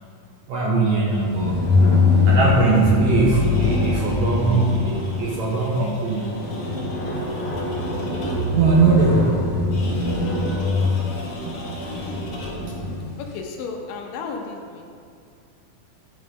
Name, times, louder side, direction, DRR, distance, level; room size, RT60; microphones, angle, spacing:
voice 1, 0.5-1.6 2.3-6.3 8.6-9.4, right 3 dB, 70° right, -4 dB, 1.8 m, -20 dB
sound 1, 1.1-13.1, left 3 dB, 55° left, 0.8 m, -23 dB
sound 2, 3.4-8.7 9.7-12.8, left 1 dB, 40° left, 2.0 m, -39 dB
voice 2, 13.2-14.8, left 4 dB, 80° left, 2 dB, 2.3 m, -33 dB
11.0 x 3.8 x 5.1 m, 2.3 s
omnidirectional pair, 4.1 m